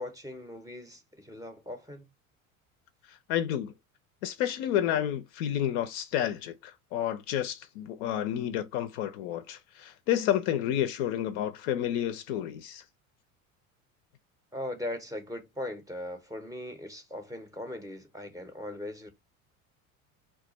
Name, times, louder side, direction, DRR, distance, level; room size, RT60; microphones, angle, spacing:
voice 1, 0.0-2.1 14.5-19.1, left 1 dB, 10° right, 0.7 m, -39 dB
voice 2, 3.3-3.7 4.2-12.8, left 11 dB, 55° left, 0.5 m, -30 dB
2.3 x 2.3 x 3.9 m
figure-of-eight pair, 75°, 43 cm